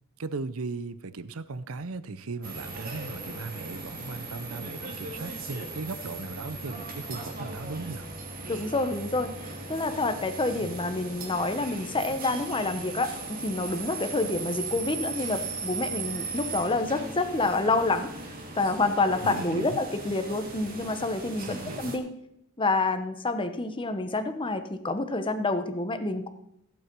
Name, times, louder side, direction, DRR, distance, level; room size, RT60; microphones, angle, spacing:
voice 1, 0.2-8.1 10.6-10.7 14.2-14.3 19.2-19.8 21.5-21.9, right 3 dB, 80° right, 14 dB, 0.7 m, -37 dB
sound 1, 2.4-22.0, right 3 dB, 45° right, 2.2 m, -38 dB
voice 2, 8.5-18.1 18.6-22.1 22.6-26.3, left 2 dB, 25° left, 9 dB, 1.0 m, -28 dB
15.5 x 8.5 x 4.6 m, 0.77 s
head